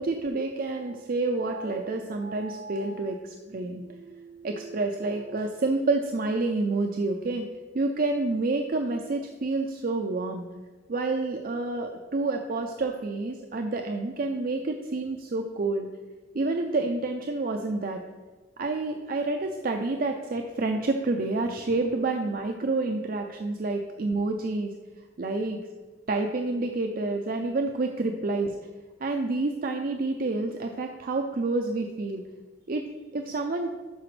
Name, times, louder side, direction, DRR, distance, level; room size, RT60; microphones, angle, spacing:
voice 1, 0.0-7.4 7.7-10.5 10.9-15.9 16.3-18.0 18.6-24.7 25.2-25.6 26.1-28.6 29.0-32.2 32.7-32.9 33.1-33.7, right 3 dB, 50° right, 4 dB, 0.5 m, -28 dB
12.0 x 5.0 x 3.2 m, 1.3 s
head